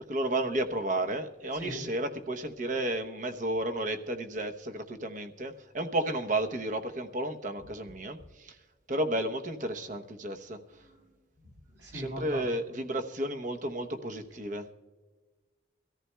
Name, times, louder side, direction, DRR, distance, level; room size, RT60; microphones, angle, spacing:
voice 1, 0.1-8.6 8.9-10.6 11.9-14.7, right 1 dB, 40° right, 6 dB, 0.8 m, -32 dB
voice 2, 11.8-12.4, equal, 60° right, 0 dB, 4.8 m, -38 dB
24.0 x 14.0 x 2.2 m, 1.3 s
head